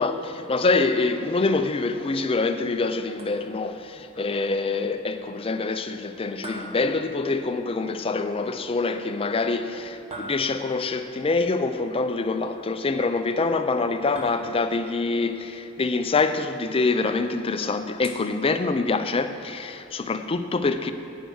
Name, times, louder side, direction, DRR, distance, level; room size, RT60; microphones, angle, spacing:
voice 1, 0.0-20.9, left 3 dB, 25° left, 0.4 m, -25 dB
sound 1, 3.2-3.8 6.4-7.7 10.1-11.0 14.1-15.0 18.0-19.1, right 1 dB, 30° right, 1.1 m, -42 dB
11.0 x 9.1 x 4.7 m
head